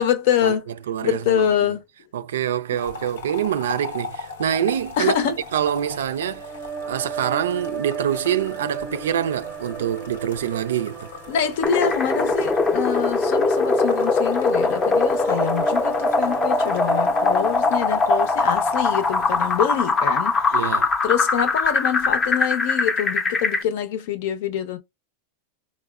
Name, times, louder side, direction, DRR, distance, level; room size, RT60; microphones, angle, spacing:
voice 1, 0.0-0.7 1.0-1.8 5.0-5.4 11.3-20.7 21.0-24.8, left 9 dB, 65° left, 0.7 m, -25 dB
voice 2, 0.9-1.8 2.1-5.1 5.5-6.5 6.9-11.1 20.5-20.9, right 10 dB, 90° right, 0.3 m, -25 dB
sound 1, 2.7-21.7 22.0-22.3, left 4 dB, 90° left, 0.9 m, -40 dB
sound 2, 6.0-19.3, right 6 dB, 30° right, 0.5 m, -35 dB
sound 3, 11.6-23.6, left 3 dB, 20° left, 0.5 m, -21 dB
4.2 x 2.0 x 2.3 m
supercardioid pair, 135°, 0 cm